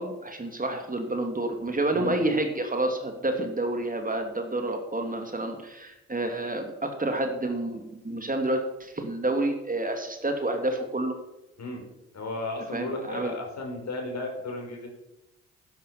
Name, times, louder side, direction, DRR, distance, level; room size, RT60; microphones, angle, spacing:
voice 1, 0.0-11.2 12.7-13.3, right 2 dB, 25° right, 4 dB, 2.7 m, -29 dB
voice 2, 12.1-14.9, left 2 dB, 50° left, 1 dB, 5.3 m, -34 dB
11.0 x 10.5 x 5.9 m, 0.89 s
hypercardioid pair, 40°, 36 cm